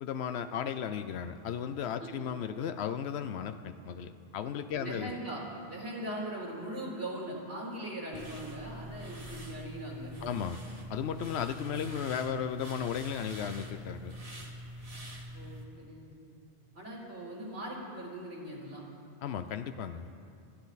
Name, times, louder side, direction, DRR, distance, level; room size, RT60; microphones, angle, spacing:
voice 1, 0.0-5.1 10.2-10.6 10.9-14.1 19.2-20.1, left 8 dB, 85° left, 10 dB, 0.9 m, -35 dB
voice 2, 4.8-5.4 5.7-10.4 15.3-16.1 16.7-18.8, right 1 dB, 80° right, -4 dB, 3.6 m, -40 dB
sound 1, 8.1-15.6, equal, 35° right, 1.8 m, -44 dB
28.0 x 10.5 x 4.1 m, 2.5 s
omnidirectional pair, 1.1 m